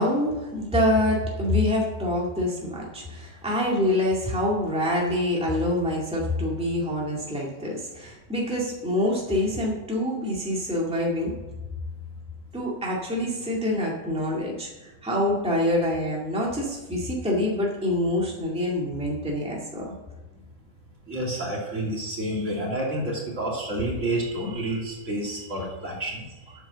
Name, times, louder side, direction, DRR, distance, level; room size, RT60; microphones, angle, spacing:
voice 1, 0.0-11.3 12.5-19.9, left 1 dB, 5° right, -3 dB, 2.0 m, -26 dB
voice 2, 21.1-26.3, right 1 dB, 55° right, -3 dB, 3.2 m, -29 dB
9.0 x 7.1 x 6.7 m, 1.1 s
omnidirectional pair, 1.6 m